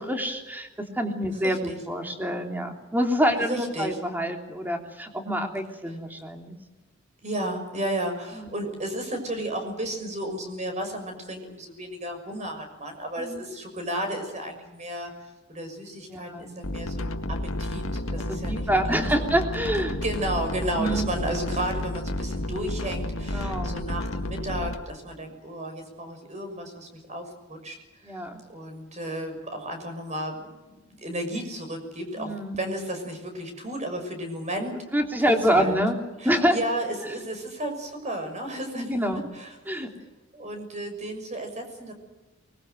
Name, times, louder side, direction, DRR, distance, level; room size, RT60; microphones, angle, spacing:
voice 1, 0.0-6.6 8.3-8.5 13.2-13.5 16.1-16.5 18.1-20.0 20.8-21.1 23.2-23.7 28.0-28.4 32.2-32.6 34.9-36.0 36.2-36.6 38.8-39.2 39.7-39.9, equal, 10° right, 4 dB, 3.2 m, -26 dB
voice 2, 1.3-1.8 3.5-4.0 5.9-6.0 7.2-15.1 15.5-19.0 19.8-27.8 28.0-34.8 35.3-35.8 36.2-39.6 40.3-41.9, right 1 dB, 35° right, 5 dB, 6.3 m, -33 dB
sound 1, 16.6-24.7, left 1 dB, 80° left, 2.0 m, -31 dB
24.0 x 22.0 x 7.8 m, 1.1 s
head